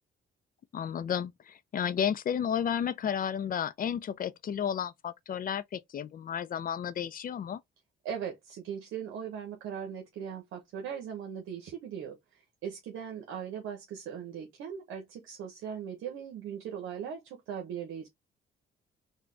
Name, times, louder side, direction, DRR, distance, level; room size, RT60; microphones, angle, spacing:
voice 1, 0.7-7.6, left 8 dB, 45° left, 0.5 m, -32 dB
voice 2, 8.0-18.1, right 8 dB, 85° right, 1.0 m, -39 dB
3.8 x 2.3 x 3.3 m
cardioid pair, 90°, 20 cm